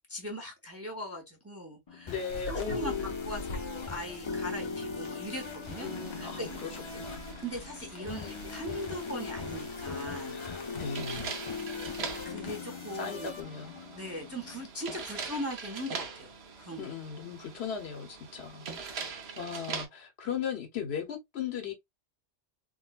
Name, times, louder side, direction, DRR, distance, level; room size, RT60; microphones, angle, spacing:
voice 1, 0.1-2.2 2.5-5.9 6.2-6.6 7.4-10.4 12.2-13.3 13.9-16.8, equal, 15° right, 0.6 m, -40 dB
sound 1, 1.9-14.7, left 4 dB, 50° left, 0.3 m, -39 dB
voice 2, 2.1-3.1 5.8-7.3 8.0-8.4 10.3-11.3 12.9-13.8 16.8-21.7, left 7 dB, 65° left, 1.0 m, -38 dB
sound 2, 2.3-12.5, equal, 85° left, 1.2 m, -47 dB
sound 3, 5.6-19.9, right 5 dB, 65° right, 1.0 m, -43 dB
3.8 x 2.2 x 2.3 m
omnidirectional pair, 1.2 m